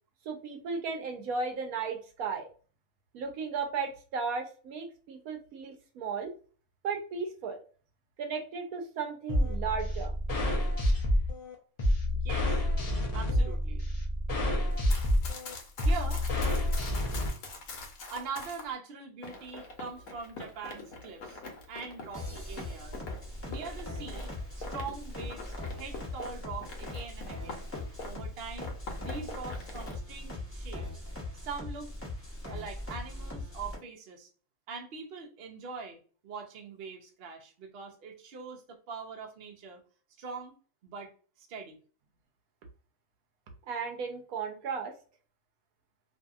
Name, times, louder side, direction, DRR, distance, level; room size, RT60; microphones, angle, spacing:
voice 1, 0.3-2.5 3.1-6.3 6.8-7.6 8.2-10.1 43.7-44.9, right 5 dB, 80° right, 4 dB, 1.1 m, -35 dB
sound 1, 9.3-17.3, left 1 dB, 55° left, 0.4 m, -28 dB
voice 2, 12.2-12.6 13.1-13.8 15.8-16.3 18.1-21.4 21.7-23.0 23.5-27.7 28.0-28.7 29.0-31.0 31.3-31.9 32.5-34.3 34.7-39.8 40.2-40.5 40.8-41.1 41.4-41.8, right 5 dB, 55° right, 2 dB, 0.8 m, -42 dB
Run, 14.7-18.7 19.2-28.3 28.6-30.0, left 3 dB, 80° left, 1.2 m, -44 dB
sound 2, 22.1-33.8, left 2 dB, 10° left, 0.7 m, -40 dB
2.7 x 2.6 x 2.3 m, 0.39 s
omnidirectional pair, 1.5 m